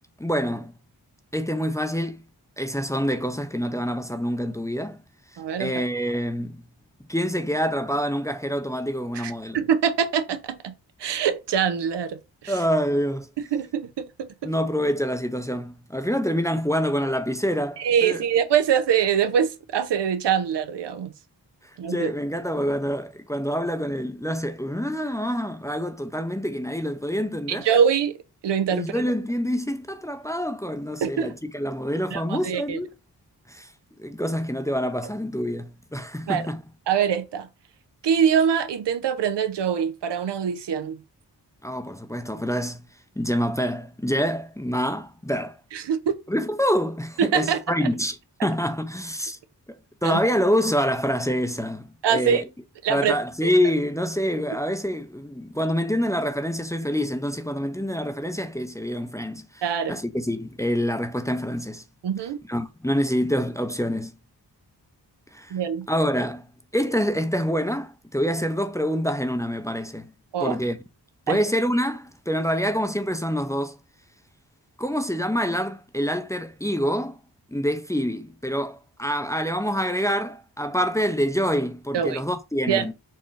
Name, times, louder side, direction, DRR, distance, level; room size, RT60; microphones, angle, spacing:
voice 1, 0.2-0.7 1.3-2.2 2.6-5.0 5.6-6.6 7.1-9.6 12.5-13.3 14.4-18.2 21.9-27.7 28.7-32.9 33.5-33.7 34.0-36.6 41.6-42.8 43.2-45.5 46.3-49.4 50.0-52.5 52.9-59.6 59.9-61.8 62.5-64.1 65.3-65.5 65.9-66.5 66.7-70.1 70.4-70.8 71.3-73.8 74.8-77.2 77.5-82.9, equal, 10° left, 0.5 m, -26 dB
voice 2, 5.4-5.7 9.1-10.7 11.0-12.6 13.5-14.5 17.8-21.1 21.8-22.1 27.5-28.2 28.4-28.9 31.0-31.3 32.1-32.8 36.3-36.4 36.9-37.5 38.0-41.0 45.7-46.2 47.2-47.9 50.0-50.2 52.0-52.4 52.8-53.2 59.6-59.9 62.0-62.4 65.5-65.9 70.3-70.6 71.3-71.4 81.9-82.2 82.7-82.9, right 8 dB, 80° right, 0.6 m, -24 dB
4.4 x 2.4 x 3.1 m
cardioid pair, 55°, 41 cm